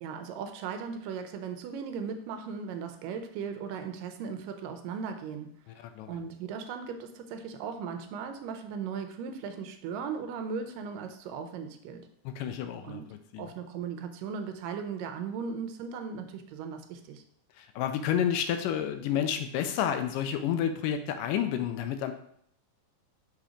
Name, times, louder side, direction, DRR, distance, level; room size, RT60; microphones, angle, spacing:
voice 1, 0.0-5.5 6.1-12.1 12.8-13.1 13.4-17.2, right 6 dB, 80° right, 7 dB, 2.2 m, -37 dB
voice 2, 5.7-6.2 12.3-13.5 17.6-22.1, left 9 dB, 80° left, 8 dB, 2.1 m, -30 dB
5.7 x 4.0 x 4.9 m, 0.68 s
omnidirectional pair, 3.9 m